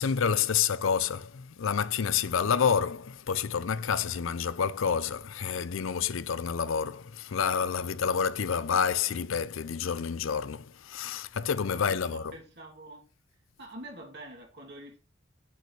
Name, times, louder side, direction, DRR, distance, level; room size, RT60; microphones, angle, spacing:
voice 1, 0.0-12.3, left 7 dB, 75° left, 0.5 m, -29 dB
voice 2, 11.8-13.1 13.6-15.0, right 1 dB, 55° right, 2.8 m, -46 dB
9.3 x 8.0 x 3.2 m
head